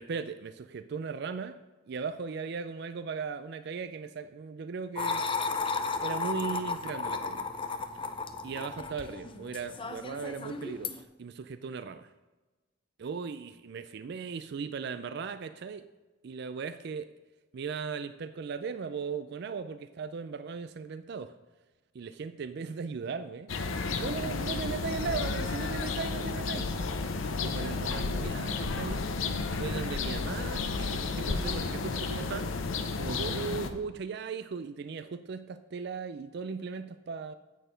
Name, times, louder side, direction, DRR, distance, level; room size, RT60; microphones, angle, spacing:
voice 1, 0.0-1.6 1.9-5.3 6.0-7.5 8.4-12.1 13.0-15.9 16.2-17.1 17.5-21.3 21.9-23.5 24.0-26.7 27.3-29.0 29.4-32.5 33.0-37.3, right 5 dB, 55° right, 11 dB, 0.4 m, -37 dB
sound 1, 5.0-11.0, left 4 dB, 25° left, 0.6 m, -34 dB
sound 2, 23.5-33.7, left 4 dB, 85° left, 0.8 m, -32 dB
9.0 x 6.5 x 5.1 m, 1.2 s
head